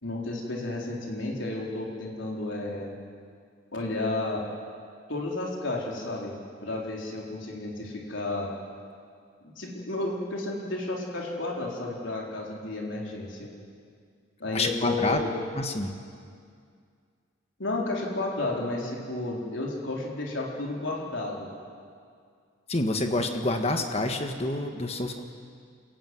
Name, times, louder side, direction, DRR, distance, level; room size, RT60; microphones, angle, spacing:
voice 1, 0.0-3.0 3.7-4.4 5.1-6.4 6.6-8.5 9.4-13.5 14.4-15.3 17.6-21.5, left 2 dB, 70° left, -2 dB, 4.0 m, -32 dB
voice 2, 14.5-15.2 15.5-15.9 22.7-25.2, left 2 dB, 30° left, 5 dB, 1.5 m, -28 dB
29.0 x 15.5 x 9.5 m, 2.2 s
head